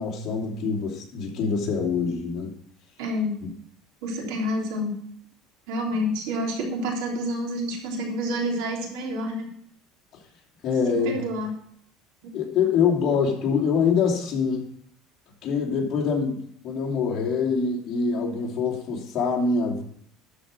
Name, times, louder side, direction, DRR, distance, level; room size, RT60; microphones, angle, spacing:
voice 1, 0.0-2.5 10.6-11.2 12.3-14.7 15.4-19.8, left 5 dB, 45° left, -3 dB, 2.8 m, -25 dB
voice 2, 3.0-3.4 4.0-5.0 5.7-9.5 11.0-11.5 12.2-12.3, equal, 80° right, -1 dB, 3.4 m, -28 dB
13.0 x 5.2 x 6.1 m, 0.65 s
cardioid pair, 145°, 0 cm